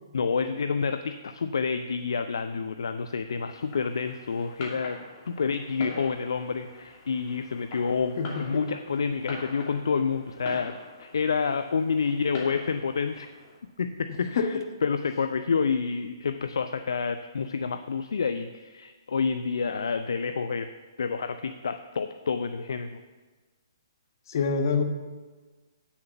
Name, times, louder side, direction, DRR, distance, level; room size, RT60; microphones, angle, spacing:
voice 1, 0.1-5.0 5.3-13.3 13.8-20.7 21.0-23.0, left 5 dB, 70° left, 10 dB, 0.5 m, -29 dB
Fireworks, 3.5-13.6, left 2 dB, 35° left, 2.8 m, -43 dB
voice 2, 8.2-8.6 14.3-14.4 24.3-24.8, left 5 dB, 55° left, 6 dB, 1.3 m, -26 dB
8.5 x 7.1 x 7.0 m, 1.3 s
figure-of-eight pair, 130°, 2 cm